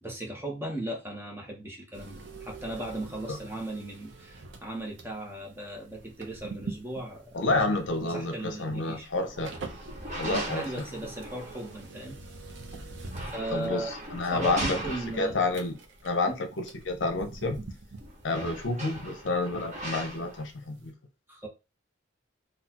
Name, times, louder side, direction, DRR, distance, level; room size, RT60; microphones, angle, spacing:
voice 1, 0.0-9.1 10.2-12.2 13.2-13.9 14.3-15.4 16.3-16.4 21.3-21.5, right 1 dB, 10° right, 1.0 m, -37 dB
sound 1, 1.9-20.6 20.8-20.9, right 2 dB, 70° right, 0.8 m, -45 dB
voice 2, 7.3-9.5 10.2-10.7 13.5-13.9 14.1-14.8 15.2-15.8 16.0-16.3 16.8-17.6 18.2-20.9, left 2 dB, 70° left, 0.7 m, -29 dB
sound 2, 9.3-11.8 12.9-15.6 17.5-17.6 17.9-20.4, right 1 dB, 40° right, 1.3 m, -39 dB
4.0 x 2.4 x 2.9 m
head